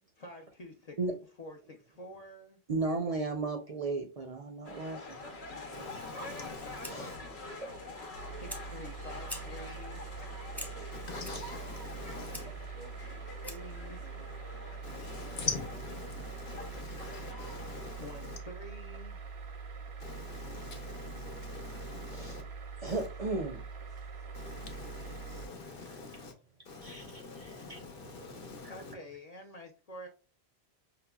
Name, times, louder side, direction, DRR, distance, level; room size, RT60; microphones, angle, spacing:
voice 1, 0.2-1.0 1.4-2.6 8.3-10.0 12.1-14.0 18.0-19.2 28.7-30.1, left 1 dB, 45° left, 0.6 m, -48 dB
voice 2, 2.7-5.2 5.7-5.8 6.9-7.1 10.5-11.0 22.1-22.4 22.8-23.6 26.8-27.8, right 3 dB, 45° right, 0.5 m, -35 dB
lewes bangs & cheers, 4.6-18.0, left 2 dB, 85° left, 1.0 m, -46 dB
voice 3, 5.7-7.2 10.9-12.4 14.8-18.4 20.0-22.4 22.9-23.1 24.3-26.3 26.7-28.9, left 4 dB, 65° left, 1.0 m, -43 dB
Fire, 6.6-13.8, left 1 dB, ahead, 0.5 m, -49 dB
sound 1, 8.1-25.5, right 5 dB, 85° right, 1.0 m, -44 dB
5.6 x 2.0 x 2.2 m
omnidirectional pair, 1.1 m